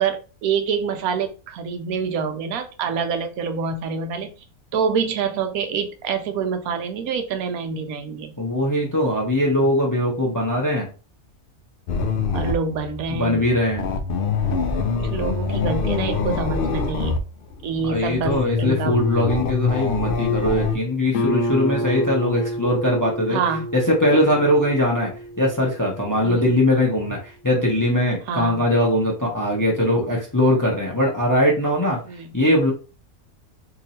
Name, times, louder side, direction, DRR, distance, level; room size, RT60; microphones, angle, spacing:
voice 1, 0.0-4.3 4.7-8.3 12.3-13.5 15.0-17.2 17.6-18.9 23.3-23.7 26.2-26.5 28.3-28.6 32.0-32.3, right 6 dB, 85° right, 7 dB, 1.1 m, -26 dB
voice 2, 8.4-10.9 13.1-13.8 17.8-23.4 23.7-25.1 25.4-32.0 32.3-32.7, left 1 dB, 20° left, -1 dB, 0.5 m, -21 dB
sound 1, 11.9-17.2 17.5-20.8, left 5 dB, 85° left, 0.4 m, -25 dB
Guitar, 21.1-26.6, equal, 70° left, 1.0 m, -29 dB
2.9 x 2.6 x 4.1 m, 0.34 s
omnidirectional pair, 1.5 m